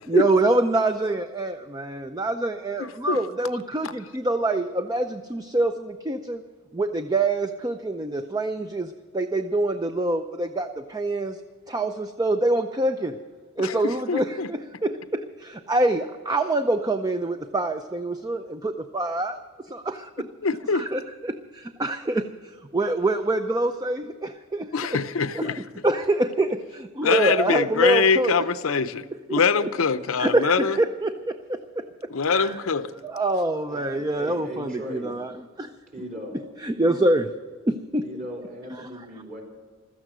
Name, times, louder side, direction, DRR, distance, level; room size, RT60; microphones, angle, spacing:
voice 1, 0.1-6.4 6.7-11.4 11.7-13.2 13.6-20.3 20.7-22.3 22.7-25.0 25.3-25.6 25.8-28.3 29.3-29.4 30.2-30.5 30.8-32.6 32.9-35.3 35.6-35.7 36.6-37.3 37.7-38.0 38.7-38.9, right 2 dB, 20° right, 8 dB, 0.5 m, -25 dB
voice 2, 2.8-3.2 13.6-14.5 20.4-20.9 24.7-25.6 27.0-29.0 29.3-30.8 32.1-32.9, left 5 dB, 75° left, 12 dB, 0.7 m, -23 dB
voice 3, 33.7-35.1 35.9-36.4 38.0-39.4, equal, 40° right, -1 dB, 4.1 m, -37 dB
16.0 x 13.5 x 6.2 m, 1.5 s
head